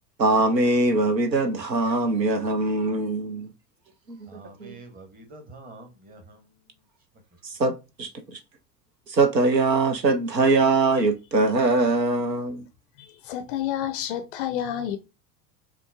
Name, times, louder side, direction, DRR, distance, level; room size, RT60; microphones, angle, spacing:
voice 1, 0.2-3.5 4.1-4.8 7.4-8.4 9.1-12.7, right 2 dB, 85° right, 0.7 m, -22 dB
voice 2, 4.3-6.8, right 2 dB, 20° right, 1.0 m, -47 dB
voice 3, 13.0-15.0, left 10 dB, 35° left, 0.4 m, -29 dB
5.7 x 2.1 x 2.3 m
figure-of-eight pair, 80°, 49 cm